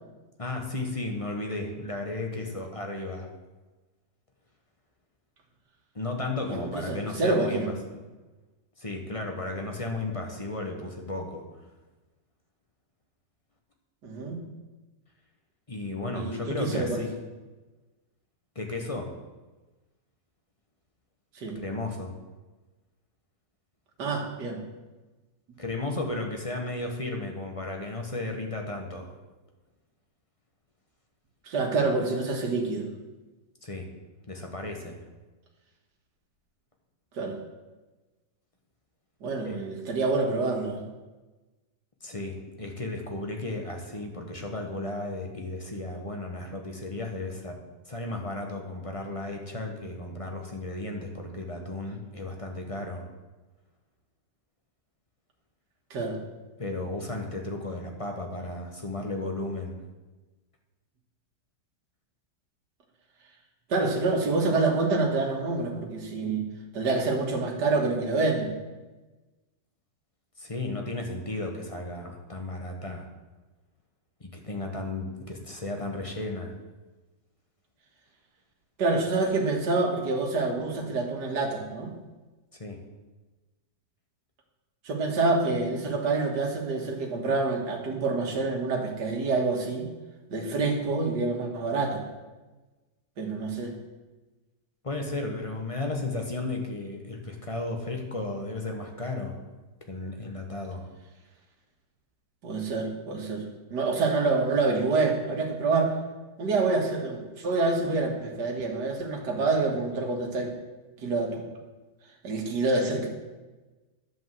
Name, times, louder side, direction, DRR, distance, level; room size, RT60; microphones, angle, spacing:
voice 1, 0.4-3.3 5.9-8.0 8.8-11.4 15.7-17.1 18.5-19.1 21.5-22.1 25.6-29.1 33.6-33.9 34.3-35.0 39.4-39.6 42.0-47.6 47.9-53.0 56.6-59.7 70.4-73.1 74.2-76.5 82.6-82.8 94.8-99.3 99.9-100.9, left 2 dB, 20° left, 2 dB, 1.1 m, -34 dB
voice 2, 6.5-7.7 14.0-14.4 16.1-17.0 21.4-21.6 24.0-24.6 31.5-32.9 37.1-37.4 39.2-40.8 55.9-56.2 63.7-66.5 66.7-68.5 78.8-81.9 84.8-89.9 90.3-92.0 93.2-93.7 102.4-103.4 103.7-105.9 106.4-110.5 111.0-111.4 112.2-113.1, right 3 dB, 65° right, 1 dB, 2.2 m, -27 dB
11.0 x 5.3 x 7.7 m, 1.2 s
omnidirectional pair, 2.0 m